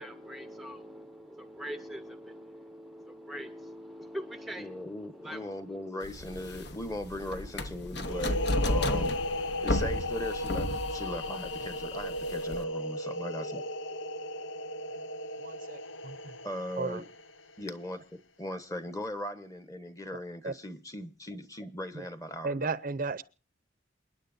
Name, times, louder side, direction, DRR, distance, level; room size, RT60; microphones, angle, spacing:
voice 1, 0.0-8.7, equal, ahead, 0.7 m, -44 dB
voice 2, 4.6-9.2 9.6-13.6 16.4-17.1 17.6-18.0 18.4-22.7, left 1 dB, 20° left, 1.1 m, -39 dB
sound 1, 6.0-12.6, left 1 dB, 60° left, 1.0 m, -33 dB
sound 2, 8.0-17.5, left 1 dB, 85° left, 0.7 m, -35 dB
voice 3, 15.4-16.3 16.8-17.0 20.4-20.5 21.9-22.0 22.4-23.2, right 4 dB, 45° right, 0.6 m, -34 dB
28.5 x 9.9 x 2.6 m
head